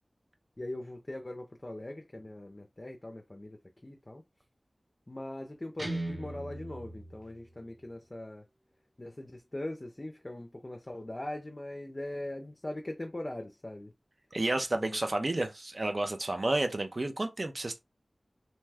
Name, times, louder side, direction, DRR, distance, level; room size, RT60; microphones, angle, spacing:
voice 1, 0.6-3.6 3.8-4.2 5.1-8.5 9.0-13.9 14.7-15.0, left 1 dB, 35° left, 0.5 m, -41 dB
Guitar, 5.8-7.8, right 2 dB, 25° right, 1.0 m, -39 dB
voice 2, 14.3-17.8, right 2 dB, 50° right, 0.5 m, -31 dB
2.6 x 2.2 x 3.3 m
wide cardioid pair, 60°, 0 cm